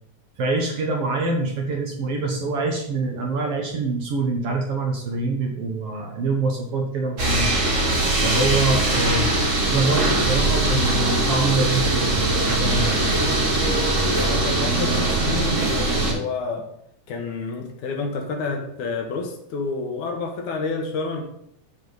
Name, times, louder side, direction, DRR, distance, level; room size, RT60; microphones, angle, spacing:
voice 1, 0.4-7.5 8.2-9.3 9.6-13.1, right 3 dB, 60° right, 1 dB, 1.8 m, -25 dB
sound 1, 7.2-16.1, right 2 dB, 30° right, 1.7 m, -21 dB
voice 2, 14.1-16.7 17.1-21.2, left 4 dB, 70° left, 3 dB, 2.6 m, -29 dB
12.5 x 4.9 x 4.0 m, 0.72 s
omnidirectional pair, 3.6 m